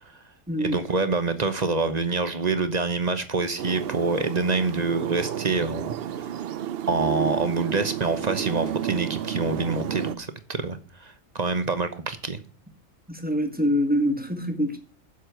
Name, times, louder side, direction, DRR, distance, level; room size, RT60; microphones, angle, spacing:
voice 1, 0.6-6.4 6.9-12.4, right 3 dB, 35° right, 1.0 m, -26 dB
sound 1, 3.6-10.1, right 10 dB, 60° right, 0.8 m, -31 dB
voice 2, 13.1-14.8, equal, 5° right, 1.5 m, -25 dB
7.7 x 6.5 x 7.9 m
omnidirectional pair, 1.3 m